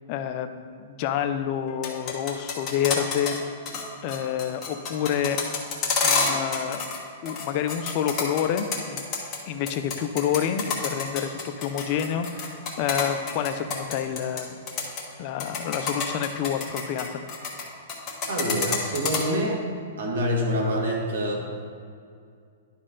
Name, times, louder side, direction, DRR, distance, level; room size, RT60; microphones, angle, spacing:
voice 1, 0.1-3.3 4.0-5.4 6.0-6.8 7.2-9.0 9.5-14.6 15.2-17.2, left 9 dB, 35° left, 8 dB, 0.4 m, -28 dB
sound 1, 1.7-3.4 3.6-3.8 4.1-7.0 7.2-9.4 9.7-14.4 14.7-15.0 15.4-17.6 17.9-19.2, left 5 dB, 20° left, 1.2 m, -27 dB
voice 2, 18.3-19.6 20.0-21.4, equal, 80° right, -1 dB, 1.9 m, -26 dB
11.0 x 4.2 x 3.8 m, 2.3 s
hypercardioid pair, 160°, 0 cm